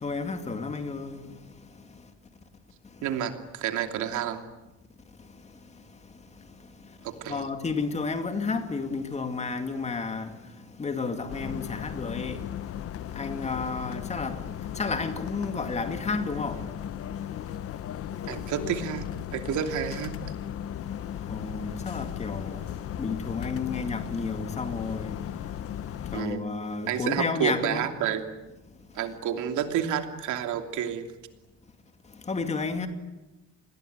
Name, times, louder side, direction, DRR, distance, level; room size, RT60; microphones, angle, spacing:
voice 1, 0.0-1.3 7.3-10.3 10.8-12.4 13.2-14.4 14.7-16.6 21.3-22.6 23.0-25.2 26.1-27.9 32.3-32.9, left 4 dB, 25° left, 2.4 m, -31 dB
voice 2, 3.0-4.4 7.0-7.5 18.3-20.1 26.1-26.4 26.9-28.2 28.9-31.1, right 9 dB, 85° right, 2.9 m, -30 dB
sound 1, 11.3-26.2, left 10 dB, 50° left, 1.0 m, -36 dB
28.5 x 20.5 x 9.6 m
cardioid pair, 170°, 29 cm